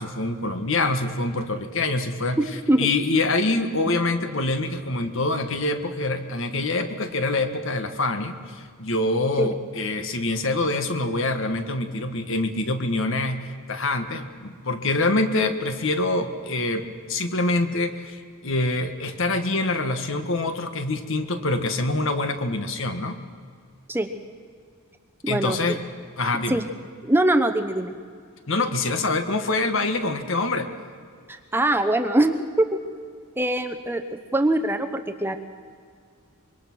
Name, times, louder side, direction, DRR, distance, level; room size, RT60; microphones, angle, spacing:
voice 1, 0.0-2.4 2.8-23.2 25.3-25.8 26.2-26.6 28.5-30.7, left 2 dB, 60° left, 8 dB, 1.6 m, -25 dB
voice 2, 2.4-2.9 3.9-4.0 9.4-9.5 23.9-24.1 25.2-25.8 26.5-26.6 27.0-27.9 31.3-32.7 33.4-35.4, right 1 dB, 10° right, 7 dB, 0.8 m, -23 dB
25.5 x 23.0 x 6.2 m, 2.1 s
head